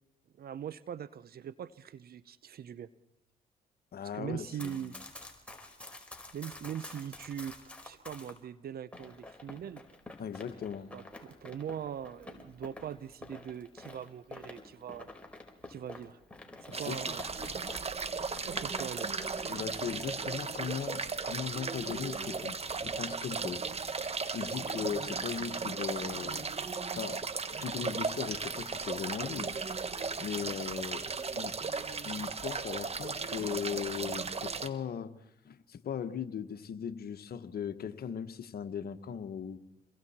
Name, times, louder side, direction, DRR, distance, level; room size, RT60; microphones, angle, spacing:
voice 1, 0.4-2.9 4.1-5.0 6.3-7.6 7.8-9.8 10.9-15.1 15.7-16.2 16.6-17.2 18.3-19.1, right 9 dB, 55° right, 0.8 m, -41 dB
voice 2, 3.9-5.0 10.2-10.9 16.7-17.2 19.5-23.6 24.3-26.5 26.9-27.2 27.6-29.5 30.2-31.0 31.3-31.5 32.0-35.1 35.4-39.6, left 8 dB, 55° left, 1.4 m, -38 dB
Run, 4.5-8.4 8.9-18.0 18.3-19.7, left 2 dB, 5° left, 4.7 m, -49 dB
sound 1, 16.7-34.7, right 4 dB, 35° right, 1.6 m, -36 dB
28.5 x 22.0 x 4.4 m
hypercardioid pair, 55°, 18 cm